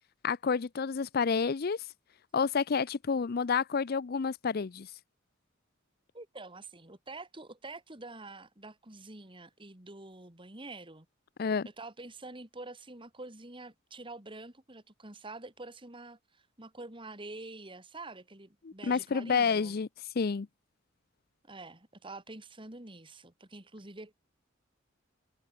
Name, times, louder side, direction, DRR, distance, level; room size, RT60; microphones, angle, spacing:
voice 1, 0.2-1.9 2.3-4.9 11.4-11.7 18.6-19.9 20.2-20.5, left 5 dB, 50° left, 0.5 m, -29 dB
voice 2, 6.1-11.1 11.8-19.8 21.4-24.1, right 2 dB, 25° right, 2.8 m, -47 dB
head